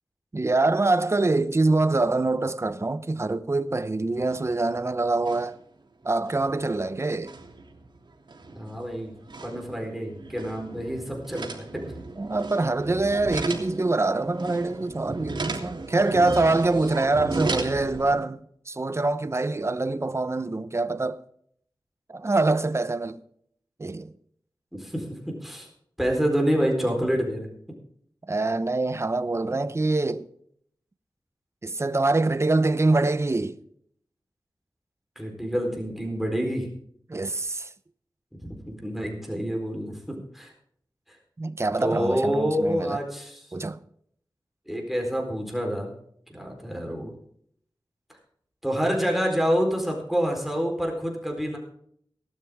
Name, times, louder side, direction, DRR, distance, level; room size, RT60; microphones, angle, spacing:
voice 1, 0.3-5.6 6.0-7.3 12.2-21.2 22.1-23.2 23.8-24.1 28.3-30.3 31.6-33.6 37.1-37.7 41.4-43.0 43.5-43.8, right 2 dB, 35° right, 0.9 m, -25 dB
sound 1, 4.1-4.8 5.0-5.6 6.0-18.1, right 3 dB, 70° right, 3.1 m, -36 dB
voice 2, 8.5-9.2 9.4-11.8 24.7-25.7 26.0-27.5 35.2-36.7 38.4-40.5 41.8-43.5 44.7-45.9 46.3-47.1 48.6-51.6, equal, ahead, 4.2 m, -27 dB
18.5 x 12.0 x 3.7 m
wide cardioid pair, 100°, 8 cm